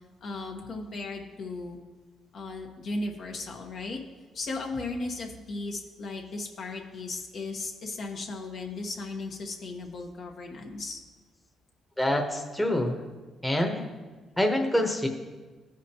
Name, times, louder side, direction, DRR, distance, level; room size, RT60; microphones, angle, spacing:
voice 1, 0.2-1.8 2.3-4.0 4.3-11.0, left 3 dB, 60° left, 1 dB, 1.2 m, -36 dB
voice 2, 12.0-13.0 13.4-13.8 14.4-15.1, left 1 dB, 5° left, 2 dB, 1.0 m, -26 dB
14.5 x 5.0 x 2.9 m, 1.3 s
cardioid pair, 90°, 0 cm